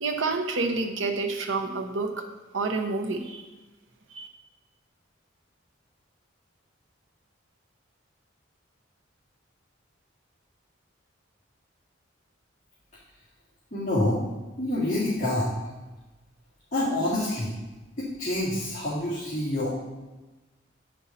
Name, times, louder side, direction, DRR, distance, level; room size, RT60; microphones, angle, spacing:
voice 1, 0.0-2.2 2.5-3.4 4.1-4.3, right 3 dB, 80° right, 3 dB, 0.9 m, -28 dB
voice 2, 13.7-14.2 14.6-15.5 16.7-17.5 18.0-19.7, left 1 dB, 35° left, -11 dB, 2.2 m, -27 dB
8.6 x 5.4 x 4.2 m, 1.2 s
head